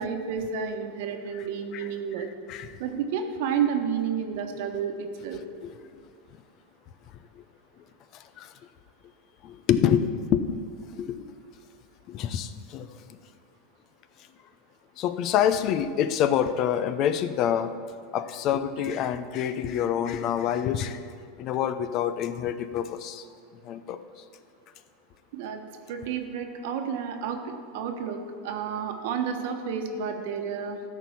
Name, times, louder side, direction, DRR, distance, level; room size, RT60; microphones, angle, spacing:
voice 1, 0.0-2.3 2.8-5.4 25.3-25.6 25.9-30.8, right 7 dB, 70° right, 5 dB, 1.2 m, -31 dB
voice 2, 9.4-11.4 12.1-12.9 15.0-17.7 18.1-21.0 21.4-23.3 23.6-24.0, left 9 dB, 45° left, 12 dB, 0.6 m, -27 dB
13.0 x 4.6 x 7.1 m, 2.1 s
supercardioid pair, 120°, 0 cm